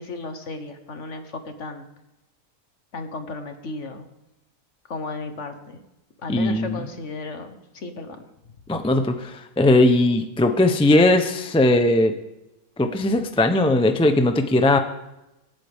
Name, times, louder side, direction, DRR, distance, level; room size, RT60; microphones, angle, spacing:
voice 1, 0.0-1.9 2.9-4.1 4.9-5.8 6.2-8.3, left 2 dB, 50° left, 7 dB, 1.5 m, -34 dB
voice 2, 6.3-6.8 8.7-12.1 12.8-14.8, left 2 dB, 5° left, 7 dB, 0.5 m, -19 dB
25.5 x 9.2 x 3.6 m, 0.95 s
omnidirectional pair, 1.6 m